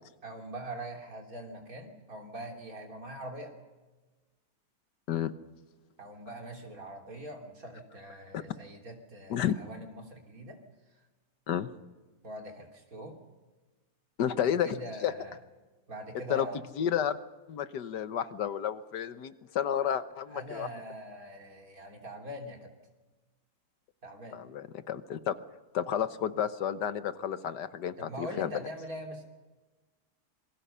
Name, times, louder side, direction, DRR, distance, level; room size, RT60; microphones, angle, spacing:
voice 1, 0.2-3.5 6.0-10.6 12.2-13.2 14.3-15.4 15.9-16.6 20.3-22.7 24.0-24.4 28.0-29.2, right 1 dB, 55° right, 2 dB, 3.7 m, -43 dB
voice 2, 14.2-15.1 16.3-16.5 16.8-17.2 17.5-20.7 24.3-25.3 25.7-28.5, left 9 dB, 85° left, 12 dB, 1.6 m, -31 dB
27.0 x 22.0 x 5.6 m, 1.2 s
omnidirectional pair, 1.8 m